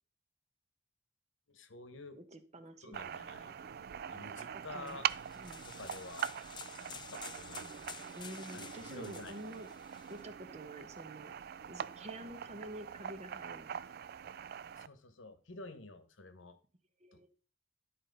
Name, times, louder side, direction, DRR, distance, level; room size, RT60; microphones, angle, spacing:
voice 1, 1.5-2.2 2.8-3.6 4.1-5.1 5.6-6.3 6.8-8.1 8.5-9.4 14.8-16.6 17.1-17.3, left 2 dB, 75° left, 11 dB, 1.1 m, -50 dB
voice 2, 2.2-3.0 4.7-5.0 5.4-5.6 8.1-11.3 11.7-13.8 17.0-17.3, right 1 dB, 35° right, 9 dB, 1.0 m, -48 dB
sound 1, 2.9-14.9, right 8 dB, 50° right, 0.3 m, -43 dB
sound 2, 4.9-10.3, left 8 dB, 25° left, 0.4 m, -51 dB
12.0 x 4.3 x 5.2 m, 0.39 s
head